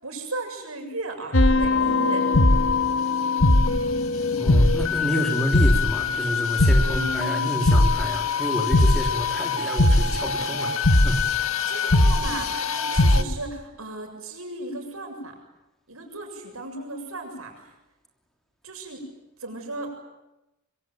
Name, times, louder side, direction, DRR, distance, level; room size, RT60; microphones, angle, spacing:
voice 1, 0.0-2.3 5.1-5.4 6.8-7.5 11.7-15.3 15.9-17.5 18.6-19.0 19.4-19.9, right 2 dB, 80° right, 3 dB, 7.3 m, -35 dB
sound 1, 1.3-13.2, left 2 dB, 75° left, 1.7 m, -21 dB
voice 2, 4.4-11.7, equal, ahead, 2 dB, 3.3 m, -29 dB
25.0 x 24.5 x 9.2 m, 0.95 s
head